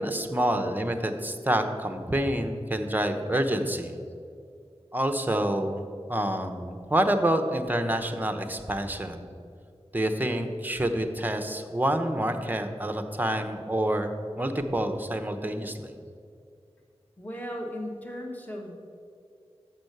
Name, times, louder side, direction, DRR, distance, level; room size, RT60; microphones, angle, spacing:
voice 1, 0.0-4.0 4.9-9.3 9.9-15.9, right 1 dB, 15° right, 6 dB, 0.7 m, -28 dB
voice 2, 17.2-18.7, equal, 15° left, 0 dB, 1.4 m, -36 dB
6.4 x 6.0 x 6.6 m, 2.3 s
wide cardioid pair, 50°, 11 cm